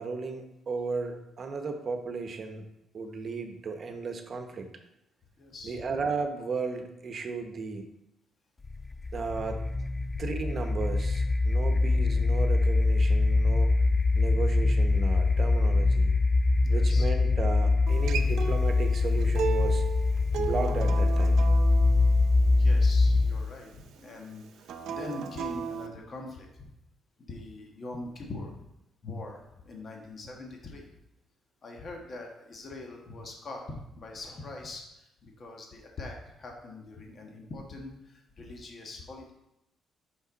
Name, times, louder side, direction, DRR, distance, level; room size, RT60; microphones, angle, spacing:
voice 1, 0.0-2.6 2.9-4.7 5.6-7.9 9.1-9.6 10.2-13.7 14.1-16.1 16.7-19.8 20.4-21.4, right 4 dB, 45° right, 5 dB, 0.9 m, -35 dB
voice 2, 5.4-5.8 10.1-10.2 11.7-11.8 16.6-17.1 22.6-26.7 27.3-28.6 29.0-30.9 31.6-39.3, left 2 dB, 45° left, 1 dB, 1.3 m, -43 dB
sound 1, 8.6-23.5, left 3 dB, 25° left, 0.3 m, -24 dB
Acoustic guitar, 17.9-23.1 24.6-25.9, right 6 dB, 75° right, 0.6 m, -35 dB
5.6 x 5.3 x 4.0 m, 0.87 s
cardioid pair, 90°, 0 cm